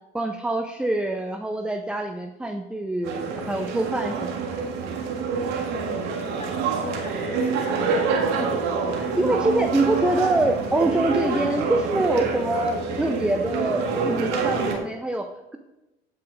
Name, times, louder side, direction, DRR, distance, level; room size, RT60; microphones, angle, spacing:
voice 1, 0.1-4.3 9.0-15.6, right 1 dB, 5° right, 4 dB, 0.7 m, -25 dB
sound 1, 3.0-14.8, right 5 dB, 55° right, 2.0 m, -26 dB
voice 2, 6.3-8.6, left 1 dB, 20° left, 4 dB, 2.1 m, -39 dB
16.0 x 8.6 x 2.6 m, 1.0 s
figure-of-eight pair, 60°, 32 cm